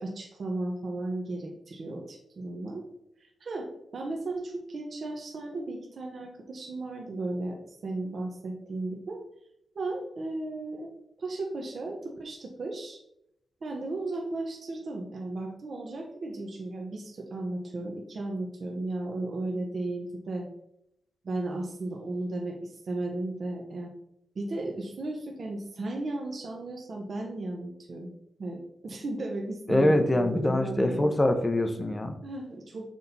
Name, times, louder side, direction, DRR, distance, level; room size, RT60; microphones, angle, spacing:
voice 1, 0.0-2.8 3.4-9.2 9.7-10.9 11.2-13.0 13.6-20.5 21.2-23.9 24.3-28.1 28.4-31.1 32.2-32.9, right 2 dB, 50° right, 0 dB, 0.9 m, -35 dB
voice 2, 29.7-32.1, left 1 dB, 20° left, 7 dB, 0.7 m, -24 dB
6.1 x 4.2 x 4.0 m, 0.78 s
wide cardioid pair, 125°, 0 cm